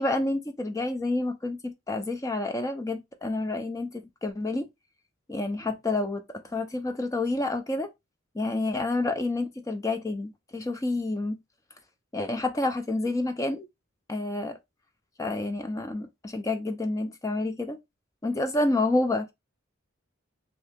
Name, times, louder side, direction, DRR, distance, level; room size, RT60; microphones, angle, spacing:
voice 1, 0.0-4.7 5.3-7.9 8.3-11.4 12.1-13.7 14.1-14.6 15.2-17.8 18.2-19.3, left 2 dB, 15° left, 0.4 m, -29 dB
2.8 x 2.7 x 3.4 m
head